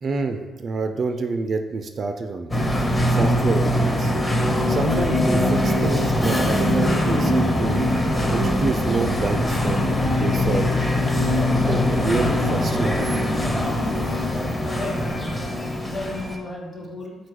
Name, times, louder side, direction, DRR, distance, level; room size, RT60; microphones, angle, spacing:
voice 1, 0.0-2.6 3.1-4.1 4.7-7.8 8.3-10.7 11.5-13.1, right 3 dB, 45° right, 6 dB, 0.3 m, -27 dB
sound 1, 2.5-16.4, left 1 dB, 15° left, 0.6 m, -22 dB
voice 2, 14.6-17.2, left 2 dB, 35° left, -1 dB, 1.1 m, -34 dB
4.4 x 2.3 x 4.7 m, 1.2 s
cardioid pair, 90°, 0 cm